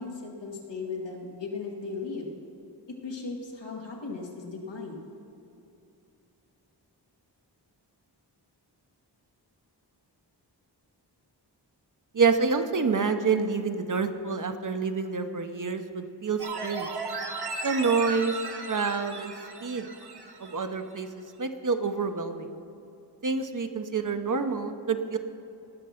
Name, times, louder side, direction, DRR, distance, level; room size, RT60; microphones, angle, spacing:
voice 1, 0.0-2.3 2.9-5.0, left 4 dB, 90° left, -1 dB, 1.9 m, -37 dB
voice 2, 12.1-16.9 17.6-18.4 18.7-19.3 19.6-19.9 20.4-21.1 21.4-22.5 23.2-25.2, right 5 dB, 45° right, 8 dB, 0.8 m, -27 dB
sound 1, 16.4-20.6 21.0-21.1, right 3 dB, 65° right, 1.2 m, -36 dB
18.5 x 6.6 x 5.7 m, 2.8 s
wide cardioid pair, 85°, 42 cm